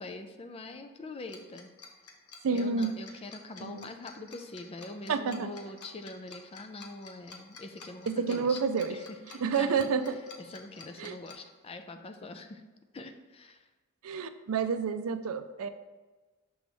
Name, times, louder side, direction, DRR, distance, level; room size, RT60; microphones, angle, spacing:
voice 1, 0.0-1.7 2.5-8.6 8.9-9.8 10.4-12.6 12.9-13.7, left 2 dB, 25° left, 7 dB, 0.4 m, -44 dB
Tick-tock, 1.3-11.3, left 5 dB, 85° left, 0.9 m, -50 dB
voice 2, 2.4-3.0 3.6-3.8 5.1-5.5 8.1-9.0 9.4-10.2 11.0-11.2 14.0-15.7, right 5 dB, 70° right, 10 dB, 0.4 m, -29 dB
6.2 x 3.3 x 5.1 m, 1.2 s
head